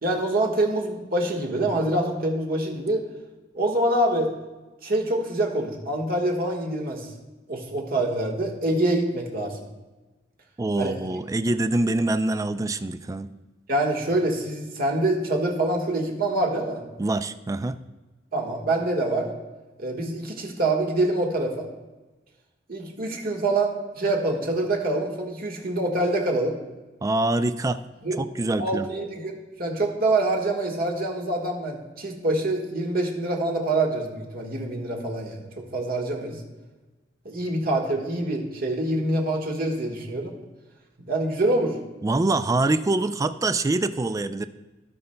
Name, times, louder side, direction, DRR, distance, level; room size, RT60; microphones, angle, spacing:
voice 1, 0.0-3.0 3.5-4.3 4.8-7.1 7.5-9.6 10.8-11.0 13.7-16.8 18.3-19.3 19.8-21.7 22.7-26.6 28.0-28.2 28.6-36.4 37.2-40.3 41.0-41.8, right 2 dB, 50° right, 0 dB, 1.4 m, -25 dB
voice 2, 10.6-13.3 17.0-17.8 27.0-27.8 28.2-28.9 42.0-44.5, right 2 dB, 20° right, 12 dB, 0.3 m, -25 dB
16.5 x 5.6 x 2.2 m, 1.2 s
head